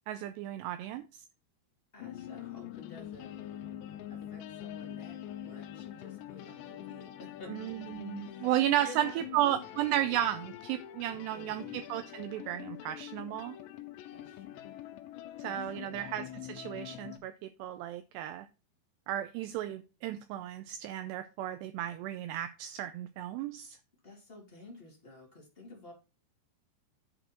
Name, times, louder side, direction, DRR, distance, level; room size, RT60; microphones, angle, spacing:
voice 1, 0.1-1.0 7.5-13.6 15.4-18.5 19.1-23.8, right 12 dB, 85° right, 2.5 m, -34 dB
voice 2, 1.9-3.3 4.1-7.5 8.2-9.6 11.3-11.8 14.1-14.7 15.4-16.0 24.0-25.9, left 2 dB, 20° left, 1.6 m, -51 dB
sound 1, 2.0-17.2, left 12 dB, 80° left, 2.9 m, -45 dB
10.5 x 5.0 x 4.4 m
omnidirectional pair, 5.3 m